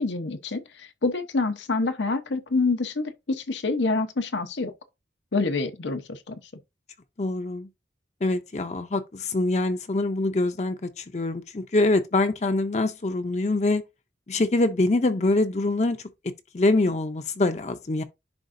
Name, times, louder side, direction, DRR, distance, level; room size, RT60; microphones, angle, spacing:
voice 1, 0.0-4.7 5.3-6.4, left 3 dB, 90° left, 0.9 m, -27 dB
voice 2, 7.2-7.7 8.2-13.8 14.3-16.0 16.5-18.0, left 2 dB, 40° left, 0.6 m, -24 dB
10.5 x 3.6 x 2.6 m
head